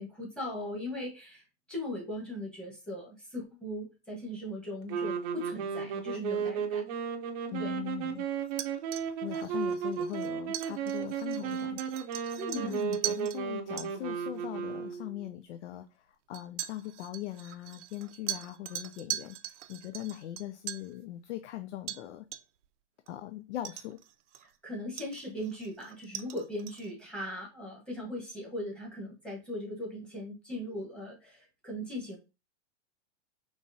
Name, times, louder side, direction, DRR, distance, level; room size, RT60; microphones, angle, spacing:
voice 1, 0.0-6.8 7.6-7.8 12.3-12.9 24.6-32.2, left 1 dB, 5° left, 1.2 m, -39 dB
sound 1, 4.9-15.3, right 7 dB, 35° right, 0.6 m, -34 dB
voice 2, 7.5-8.3 9.2-12.0 12.5-22.3 23.1-24.0, left 14 dB, 75° left, 0.5 m, -40 dB
sound 2, 8.5-13.4 13.8-13.9 14.9-15.0 16.3-20.9 21.9-22.0 22.3-22.6 23.1-23.2 23.6-24.6 25.0-26.9, right 12 dB, 90° right, 0.6 m, -41 dB
5.2 x 3.1 x 2.7 m
supercardioid pair, 155°, 35 cm